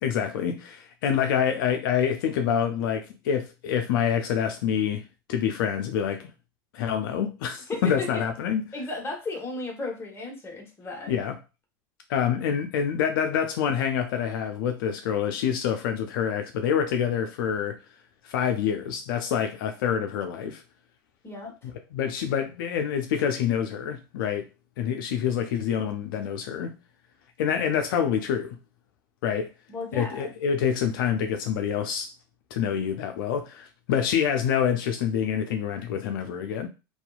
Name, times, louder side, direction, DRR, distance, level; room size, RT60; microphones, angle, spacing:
voice 1, 0.0-5.0 5.3-6.3 6.7-8.7 11.1-11.3 12.1-17.8 18.2-20.6 21.9-24.4 24.8-26.8 27.4-28.6 29.2-29.5 29.9-32.1 32.5-36.7, left 8 dB, 70° left, 0.4 m, -26 dB
voice 2, 7.7-8.3 8.7-11.1 21.2-21.7 29.7-30.3, left 3 dB, 20° left, 1.0 m, -35 dB
2.6 x 2.3 x 2.3 m
hypercardioid pair, 90°, 12 cm